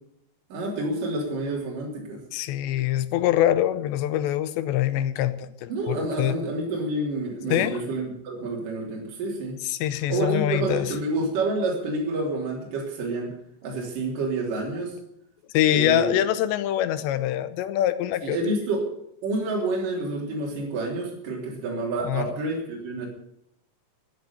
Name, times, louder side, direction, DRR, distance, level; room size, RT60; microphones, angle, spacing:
voice 1, 0.5-2.2 5.7-9.6 10.1-13.3 13.6-15.0 15.7-16.1 18.2-18.9 19.2-23.1, right 2 dB, 50° right, 4.7 m, -28 dB
voice 2, 2.3-6.4 7.5-7.8 9.7-10.9 15.5-18.4 22.0-22.3, left 12 dB, 85° left, 2.9 m, -24 dB
15.0 x 8.1 x 9.2 m
omnidirectional pair, 5.1 m